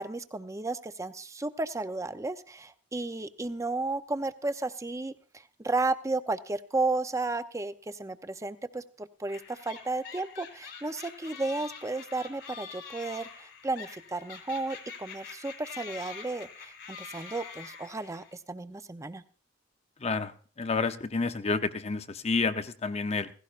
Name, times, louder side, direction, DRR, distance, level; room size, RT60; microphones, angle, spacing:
voice 1, 0.0-5.1 5.6-19.2, right 2 dB, 15° right, 11 dB, 0.6 m, -33 dB
sound 1, 9.3-18.3, left 6 dB, 75° left, 2.2 m, -45 dB
voice 2, 20.0-20.3 20.6-23.3, left 4 dB, 35° left, 9 dB, 0.7 m, -29 dB
16.5 x 16.0 x 2.5 m, 0.41 s
head